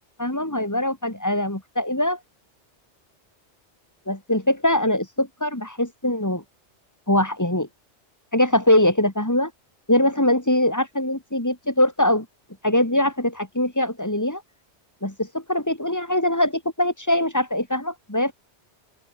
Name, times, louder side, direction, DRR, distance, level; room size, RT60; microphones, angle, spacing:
voice 1, 0.2-2.2 4.1-6.4 7.1-7.7 8.3-9.5 9.9-12.3 12.6-14.4 15.0-18.3, left 1 dB, 15° left, 3.1 m, -22 dB
open air
omnidirectional pair, 1.2 m